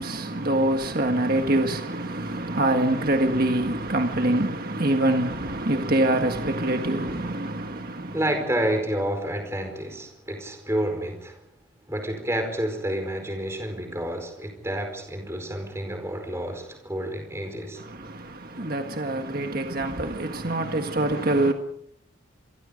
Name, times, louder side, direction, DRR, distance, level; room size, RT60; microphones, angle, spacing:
voice 1, 0.0-8.2 17.8-21.5, right 1 dB, 45° right, 1.7 m, -25 dB
voice 2, 8.1-11.4 11.9-17.8, right 1 dB, 15° right, 4.8 m, -29 dB
28.0 x 23.5 x 5.2 m
head